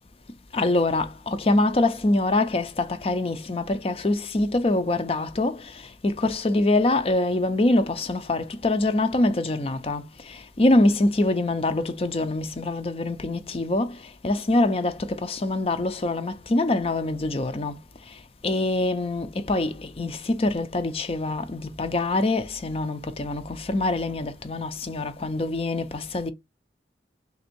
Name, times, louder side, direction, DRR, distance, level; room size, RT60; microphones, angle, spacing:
voice 1, 0.5-17.8 18.1-18.2 18.4-26.3, left 2 dB, 35° left, 0.5 m, -24 dB
3.5 x 2.6 x 4.3 m
head